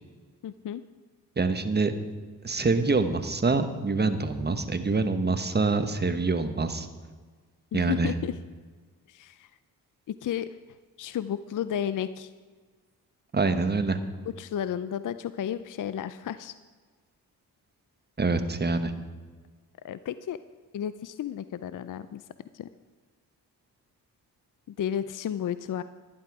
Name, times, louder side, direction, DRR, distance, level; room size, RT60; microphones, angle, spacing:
voice 1, 0.4-0.8 7.7-8.3 9.1-9.5 10.1-10.5 11.0-12.3 14.4-16.5 19.8-20.4 20.7-22.2 22.5-22.7 24.7-25.8, left 9 dB, 50° left, 14 dB, 0.5 m, -32 dB
voice 2, 1.4-1.9 2.4-6.9 7.7-8.1 13.3-14.0 18.2-18.9, right 3 dB, 25° right, 9 dB, 1.2 m, -25 dB
11.5 x 11.0 x 4.8 m, 1.4 s
cardioid pair, 60°, 40 cm